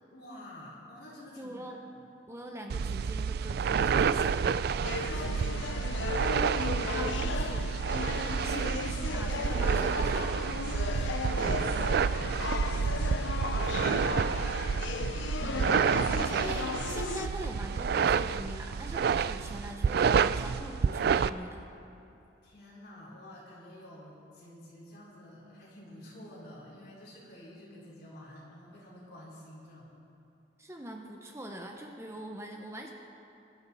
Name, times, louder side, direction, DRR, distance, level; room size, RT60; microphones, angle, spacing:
voice 1, 0.1-1.6 4.9-6.0 10.6-14.5 22.4-29.9, left 1 dB, 60° left, -6 dB, 4.5 m, -49 dB
voice 2, 1.4-1.8 2.3-4.6 6.9-7.8 8.1-10.3 15.4-21.6 30.6-32.9, right 1 dB, 15° right, 2 dB, 0.9 m, -42 dB
sound 1, 2.7-21.3, right 6 dB, 55° right, 0.3 m, -29 dB
sound 2, 4.8-17.3, left 5 dB, 80° left, 0.5 m, -36 dB
21.5 x 12.5 x 4.1 m, 2.7 s
head